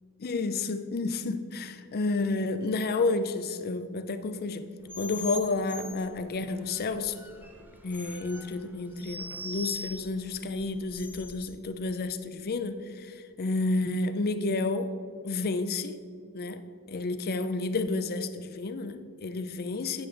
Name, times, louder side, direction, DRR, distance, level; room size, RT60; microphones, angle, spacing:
voice 1, 0.2-4.7 5.0-7.2 7.8-15.0 15.2-16.0 16.3-16.6 16.9-20.1, left 3 dB, 45° left, 0.5 m, -30 dB
sound 1, 4.9-11.5, equal, 10° right, 0.7 m, -42 dB
8.7 x 7.7 x 3.9 m
head